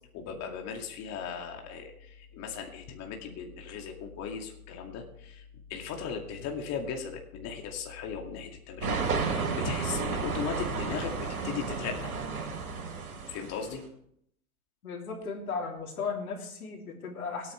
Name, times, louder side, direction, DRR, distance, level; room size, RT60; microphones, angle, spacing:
voice 1, 0.1-5.4 5.7-12.1 13.3-13.8, left 7 dB, 35° left, 2 dB, 2.4 m, -37 dB
sound 1, 8.8-13.7, right 4 dB, 80° right, 3.5 m, -32 dB
voice 2, 14.8-17.5, left 5 dB, 80° left, -1 dB, 3.3 m, -36 dB
23.0 x 9.3 x 3.4 m, 0.71 s
hypercardioid pair, 110°, 43 cm